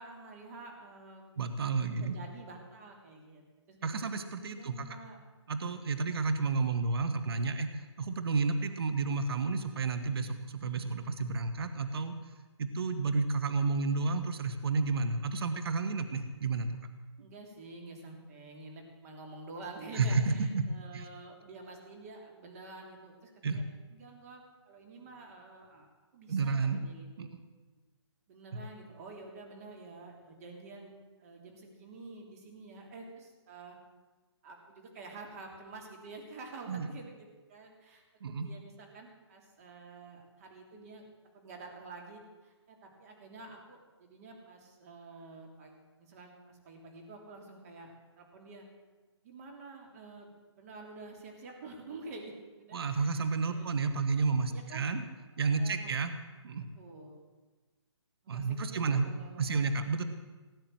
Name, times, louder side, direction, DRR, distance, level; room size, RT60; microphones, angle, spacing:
voice 1, 0.0-1.2 1.8-4.1 4.5-5.2 17.2-23.6 23.9-25.9 26.1-27.3 28.3-30.9 31.2-33.8 34.4-41.0 41.3-48.7 49.2-50.3 50.6-53.2 53.5-53.7 54.5-54.9 55.6-56.0 56.8-57.2 58.2-59.7, right 3 dB, 30° right, 1 dB, 3.1 m, -49 dB
voice 2, 1.4-2.2 3.8-5.0 5.5-12.2 12.6-16.8 17.2-17.3 19.9-20.7 20.9-21.1 23.4-23.6 26.3-26.8 27.2-27.3 28.5-28.6 36.7-36.9 38.2-38.5 52.7-55.0 55.4-56.1 56.4-56.7 58.3-59.1 59.4-60.0, right 4 dB, 55° right, 8 dB, 1.4 m, -31 dB
18.0 x 8.8 x 7.8 m, 1.3 s
hypercardioid pair, 160°, 15 cm